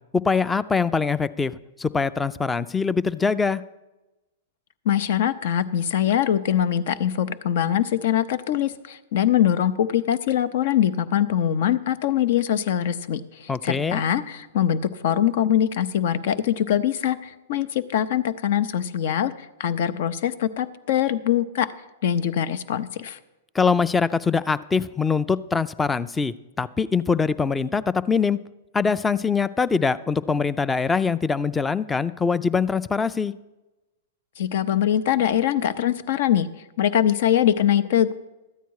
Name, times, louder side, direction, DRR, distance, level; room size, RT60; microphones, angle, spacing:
voice 1, 0.1-3.6 13.5-14.0 23.5-28.4 28.7-33.3, left 5 dB, 15° left, 17 dB, 0.4 m, -23 dB
voice 2, 4.8-19.3 19.6-21.7 22.0-23.2 34.4-36.5 36.8-38.1, left 10 dB, 60° left, 14 dB, 0.7 m, -23 dB
13.0 x 9.1 x 4.7 m, 1.0 s
hypercardioid pair, 115°, 0 cm